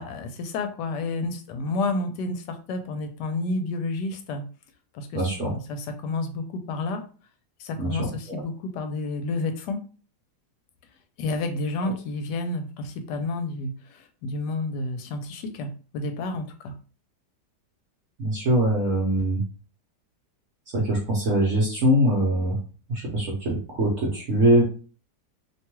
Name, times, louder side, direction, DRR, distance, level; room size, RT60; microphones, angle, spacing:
voice 1, 0.0-4.4 4.9-7.0 7.6-9.8 11.2-15.7 15.9-16.7, left 2 dB, 80° left, 7 dB, 1.2 m, -30 dB
voice 2, 5.1-5.5 7.8-8.4 18.2-19.4 20.7-22.6 22.9-24.6, right 1 dB, 55° right, -4 dB, 1.0 m, -23 dB
2.9 x 2.2 x 3.0 m, 0.38 s
omnidirectional pair, 1.8 m